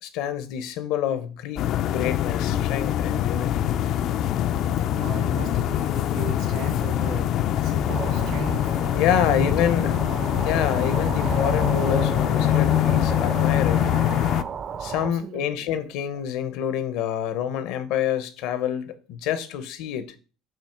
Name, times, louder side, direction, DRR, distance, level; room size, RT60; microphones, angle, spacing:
voice 1, 0.0-1.6 1.9-3.7 8.9-9.9 10.4-13.8 14.8-20.1, left 9 dB, 70° left, 0.8 m, -27 dB
sound 1, 1.6-14.4, left 11 dB, 50° left, 0.4 m, -24 dB
voice 2, 5.0-8.7 9.2-10.1 14.9-15.5, right 6 dB, 65° right, 0.8 m, -37 dB
sound 2, 7.9-15.1, right 7 dB, 35° right, 0.5 m, -33 dB
7.5 x 2.9 x 5.9 m
cardioid pair, 135°, 0 cm